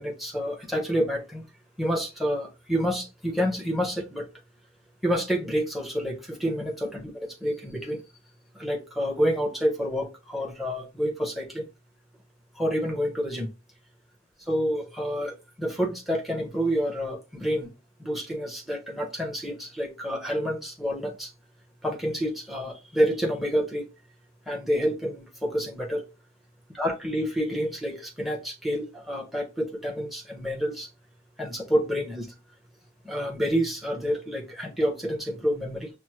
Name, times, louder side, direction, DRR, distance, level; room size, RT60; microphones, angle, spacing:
voice 1, 0.0-1.4 1.8-4.3 5.0-8.0 8.5-11.7 12.5-13.5 14.5-17.7 18.0-21.3 21.8-23.9 24.5-26.0 26.7-30.9 31.4-32.3 33.0-35.9, equal, ahead, 0.8 m, -28 dB
6.0 x 2.0 x 2.9 m
head